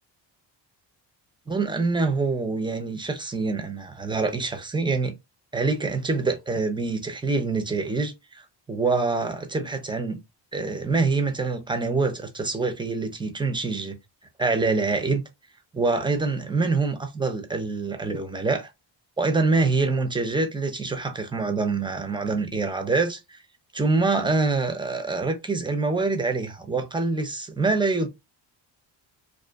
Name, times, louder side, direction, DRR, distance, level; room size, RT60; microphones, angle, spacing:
voice 1, 1.5-5.1 5.5-10.2 10.5-14.0 14.4-15.2 15.7-18.7 19.2-23.4 23.7-28.1, right 3 dB, 10° right, 0.5 m, -25 dB
2.5 x 2.3 x 2.3 m
cardioid pair, 85°, 47 cm